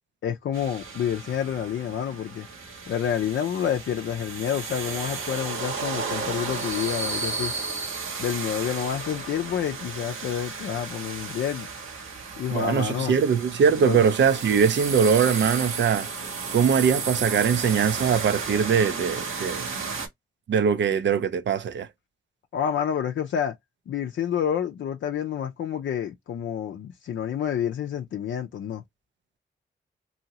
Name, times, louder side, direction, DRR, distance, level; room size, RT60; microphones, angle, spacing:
voice 1, 0.2-2.5 2.9-7.5 8.2-11.7 12.4-13.2 13.8-14.0 22.5-23.5 23.9-28.8, left 9 dB, 65° left, 0.5 m, -28 dB
sound 1, 0.5-20.1, right 4 dB, 75° right, 1.0 m, -33 dB
voice 2, 12.5-16.1 16.5-19.7 20.5-21.9, right 7 dB, 60° right, 0.5 m, -22 dB
2.7 x 2.7 x 2.8 m
supercardioid pair, 40°, 21 cm